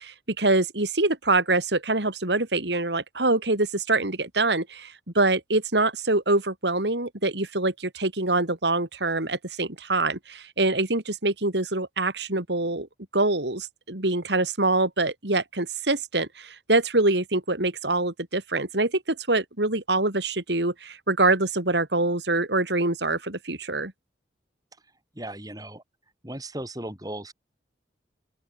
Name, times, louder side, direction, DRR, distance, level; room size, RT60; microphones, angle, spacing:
voice 1, 0.0-12.9 13.1-23.9, right 2 dB, 70° right, 3.3 m, -25 dB
voice 2, 25.1-25.8 26.2-27.3, right 1 dB, 20° right, 6.6 m, -36 dB
open air
head